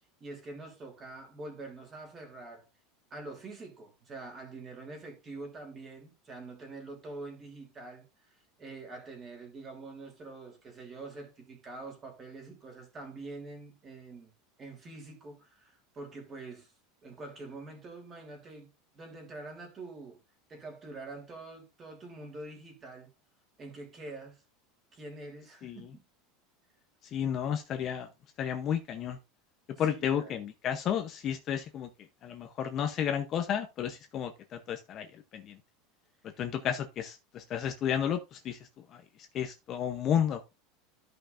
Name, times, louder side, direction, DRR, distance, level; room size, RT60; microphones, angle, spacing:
voice 1, 0.2-2.6 3.1-14.3 14.6-16.7 17.0-20.2 20.5-23.1 23.6-24.4 24.9-26.0 29.8-30.3, right 3 dB, 20° right, 3.1 m, -45 dB
voice 2, 27.1-28.1 28.4-29.2 29.8-31.9 32.2-35.1 35.3-35.6 36.4-38.6 38.9-39.0 39.3-40.5, left 9 dB, 25° left, 0.8 m, -32 dB
14.0 x 5.7 x 2.5 m
supercardioid pair, 175°, 0 cm